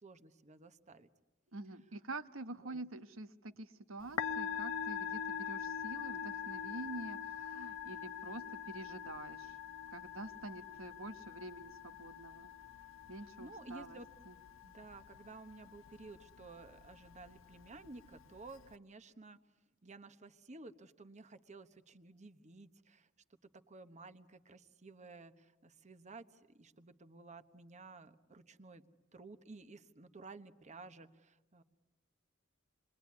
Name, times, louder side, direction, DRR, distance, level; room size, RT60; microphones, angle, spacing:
voice 1, 0.0-1.1 2.6-2.8 13.4-14.1 14.6-19.4 19.8-23.1 23.4-28.8 29.1-31.6, right 3 dB, 35° right, 10 dB, 1.1 m, -54 dB
voice 2, 1.5-9.6 9.9-12.5 13.1-14.0 14.2-14.3, right 2 dB, 85° right, 10 dB, 1.2 m, -47 dB
Musical instrument, 4.0-18.7, left 8 dB, 75° left, 0.9 m, -44 dB
28.5 x 22.0 x 9.5 m, 1.1 s
head